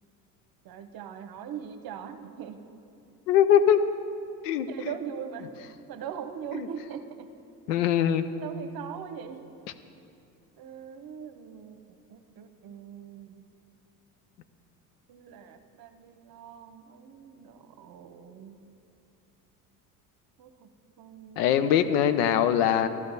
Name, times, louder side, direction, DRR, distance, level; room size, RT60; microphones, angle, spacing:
voice 1, 0.6-2.6 4.7-5.6 5.9-7.3 8.4-9.5 10.6-13.5 15.1-18.6 20.4-20.7 21.0-21.5, right 8 dB, 50° right, 9 dB, 1.0 m, -41 dB
voice 2, 3.3-3.8 4.4-4.7 6.6-6.7 7.7-8.2 21.4-22.9, left 9 dB, 80° left, 11 dB, 0.8 m, -22 dB
12.0 x 11.5 x 4.0 m, 2.6 s
hypercardioid pair, 75°, 47 cm